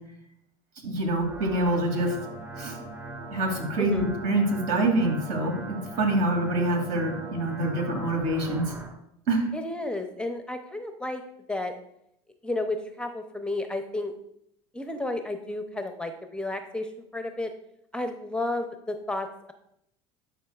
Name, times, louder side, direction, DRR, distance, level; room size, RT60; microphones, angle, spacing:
voice 1, 0.8-2.1 2.6-2.7 3.3-8.6 9.3-9.4, right 1 dB, 65° right, 2 dB, 2.5 m, -26 dB
sound 1, 0.9-8.9, right 2 dB, 20° right, 2.7 m, -40 dB
voice 2, 9.5-11.2 11.5-11.7 12.4-14.1 14.7-16.9 17.1-17.5 17.9-19.5, left 2 dB, 5° left, 7 dB, 0.6 m, -32 dB
11.5 x 5.2 x 2.4 m, 0.76 s
supercardioid pair, 100°, 15 cm